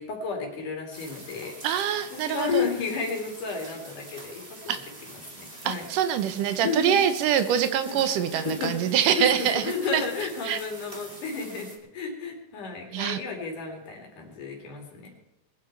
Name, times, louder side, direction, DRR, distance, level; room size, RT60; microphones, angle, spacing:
voice 1, 0.0-4.8 5.1-5.9 6.6-7.0 7.8-8.0 8.3-15.1, left 5 dB, 75° left, 1 dB, 3.8 m, -32 dB
sound 1, 0.9-11.8, right 1 dB, 20° right, 1.7 m, -45 dB
voice 2, 1.6-2.6 4.7-4.8 5.7-9.6 9.9-10.0 10.5-10.6 12.9-13.2, right 9 dB, 85° right, 11 dB, 2.5 m, -24 dB
21.5 x 10.0 x 4.6 m, 0.90 s
omnidirectional pair, 3.7 m